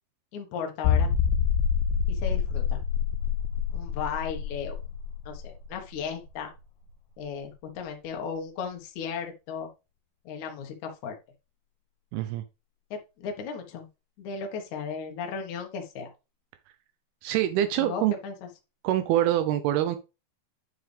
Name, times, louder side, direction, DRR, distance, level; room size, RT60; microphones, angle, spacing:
voice 1, 0.3-1.1 2.1-2.8 3.7-4.8 5.3-6.5 7.2-9.7 10.3-11.2 12.9-13.9 14.2-16.1 17.8-18.3, left 6 dB, 60° left, 3 dB, 2.3 m, -35 dB
sound 1, 0.8-6.3 6.6-6.7 7.2-7.3, left 7 dB, 75° left, 2.2 m, -27 dB
voice 2, 12.1-12.4 17.2-18.2 18.8-20.0, right 12 dB, 85° right, 9 dB, 2.6 m, -25 dB
9.4 x 4.9 x 3.3 m, 0.28 s
omnidirectional pair, 4.5 m